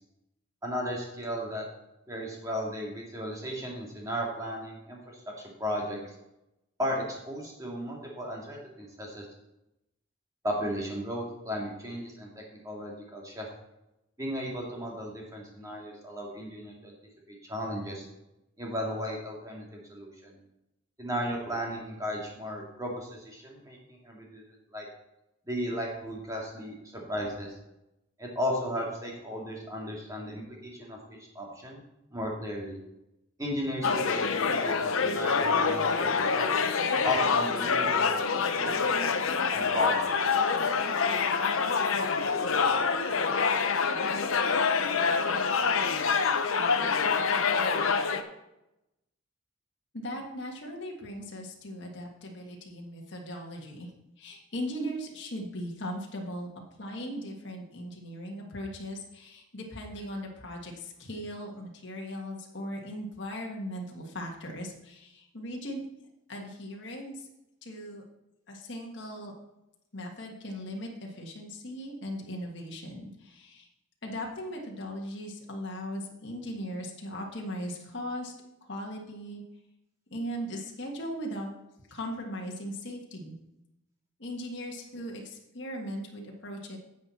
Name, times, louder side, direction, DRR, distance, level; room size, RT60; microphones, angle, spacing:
voice 1, 0.6-1.6 2.1-5.2 5.6-6.0 6.8-9.3 10.4-13.5 14.2-16.9 17.3-18.1 18.6-20.4 21.0-24.4 24.7-24.9 25.5-27.5 28.2-31.8 32.1-32.8 33.4-36.5 37.0-38.8 39.5-40.1, equal, 15° right, -2 dB, 2.1 m, -35 dB
sound 1, 33.8-48.2, left 5 dB, 80° left, 0.8 m, -26 dB
voice 2, 49.9-53.9 54.2-56.5 56.8-65.8 66.3-67.2 67.6-68.0 68.5-69.3 69.9-73.7 74.0-78.3 78.7-79.4 80.1-81.5 81.9-83.3 84.2-86.8, equal, 55° left, 0 dB, 1.6 m, -38 dB
10.5 x 7.8 x 4.2 m, 0.89 s
head